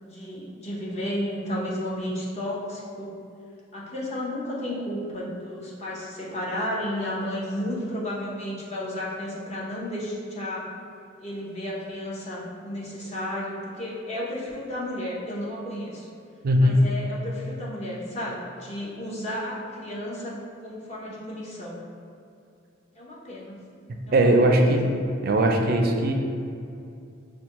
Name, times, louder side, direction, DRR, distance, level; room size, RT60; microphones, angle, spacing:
voice 1, 0.0-3.2 3.7-10.7 11.2-16.1 16.6-21.8 22.9-23.7 24.1-24.8, left 1 dB, 35° left, -6 dB, 0.8 m, -33 dB
voice 2, 16.4-16.8 24.1-24.9 25.2-26.1, right 1 dB, 50° right, 2 dB, 0.4 m, -19 dB
5.9 x 2.2 x 2.9 m, 2.6 s
head